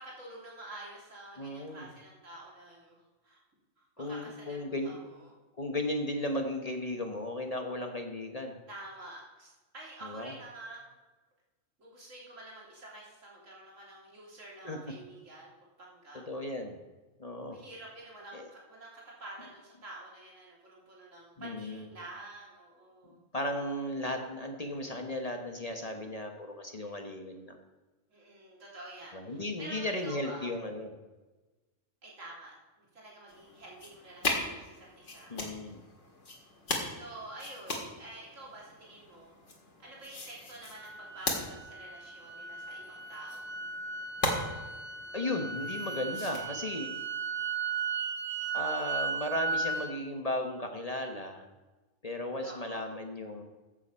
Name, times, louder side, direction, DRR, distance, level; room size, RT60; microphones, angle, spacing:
voice 1, 0.0-3.4 3.8-5.3 8.7-10.8 11.8-16.2 17.5-23.2 28.1-30.5 32.0-35.4 36.9-39.3 39.8-43.6 47.2-47.5 52.4-53.0, right 2 dB, 75° right, -3 dB, 3.5 m, -48 dB
voice 2, 1.4-1.9 4.0-5.0 5.6-8.5 10.1-10.3 14.6-14.8 16.3-16.8 17.2-17.6 18.3-18.5 21.4-21.9 23.3-27.6 29.1-30.9 35.3-35.8 45.1-46.9 48.5-51.4 52.0-53.4, left 1 dB, 30° left, 4 dB, 1.1 m, -35 dB
sound 1, 33.3-46.4, left 2 dB, 70° left, 2.3 m, -39 dB
sound 2, 40.8-49.9, right 5 dB, 45° right, 1.5 m, -36 dB
14.5 x 7.6 x 5.5 m, 1.2 s
omnidirectional pair, 1.3 m